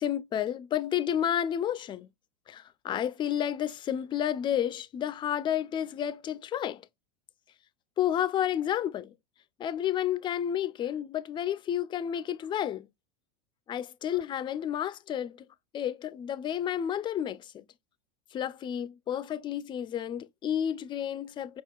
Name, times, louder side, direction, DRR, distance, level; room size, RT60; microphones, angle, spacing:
voice 1, 0.0-2.1 2.5-6.8 8.0-9.1 9.6-12.9 13.7-15.5 15.7-17.6 18.3-21.6, left 10 dB, 20° left, 0.4 m, -31 dB
5.0 x 3.6 x 2.3 m
hypercardioid pair, 105°, 21 cm